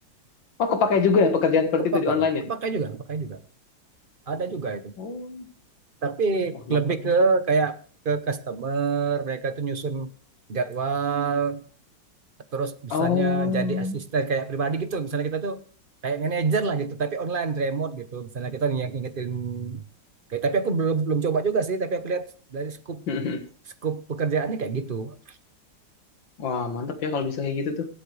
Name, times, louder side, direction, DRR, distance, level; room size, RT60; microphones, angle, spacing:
voice 1, 0.6-2.4 5.0-5.4 6.7-6.8 12.9-14.0 23.1-23.4 26.4-27.9, left 5 dB, 85° left, 7 dB, 2.2 m, -24 dB
voice 2, 1.9-3.4 4.3-4.9 6.0-7.8 8.0-10.1 10.5-11.6 12.5-15.6 16.0-19.8 20.3-23.1 23.8-25.4, right 4 dB, 40° right, 10 dB, 0.8 m, -26 dB
23.5 x 8.5 x 3.3 m, 0.44 s
omnidirectional pair, 2.0 m